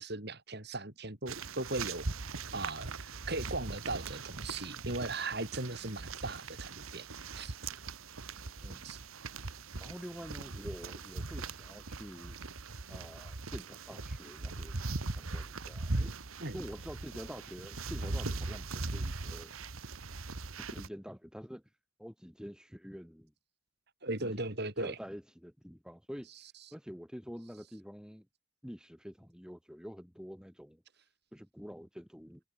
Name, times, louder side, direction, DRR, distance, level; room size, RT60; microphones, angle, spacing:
voice 1, 0.0-2.1 2.5-7.1 7.3-7.6 8.8-9.0 16.4-16.6 24.0-25.0, right 2 dB, 50° right, 4.2 m, -38 dB
sound 1, 1.3-20.9, right 3 dB, 85° right, 1.5 m, -40 dB
voice 2, 9.8-12.4 12.9-14.8 15.2-16.1 16.5-19.5 20.6-21.6 22.0-23.3 24.2-24.4 24.8-26.3 26.7-28.3 28.6-30.8 31.3-32.4, equal, 5° right, 7.6 m, -47 dB
head